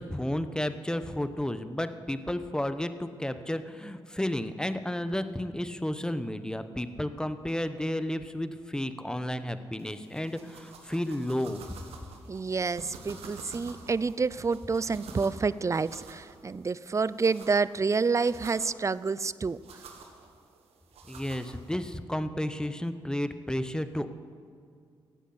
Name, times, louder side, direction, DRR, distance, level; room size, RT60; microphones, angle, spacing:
voice 1, 0.0-11.6 21.1-24.1, left 1 dB, 5° left, 11 dB, 1.0 m, -32 dB
sound 1, 9.8-21.8, right 4 dB, 85° right, 1.5 m, -49 dB
voice 2, 12.3-19.6, right 4 dB, 30° right, 19 dB, 0.4 m, -28 dB
15.5 x 8.3 x 7.9 m, 2.2 s
supercardioid pair, 50°, 10 cm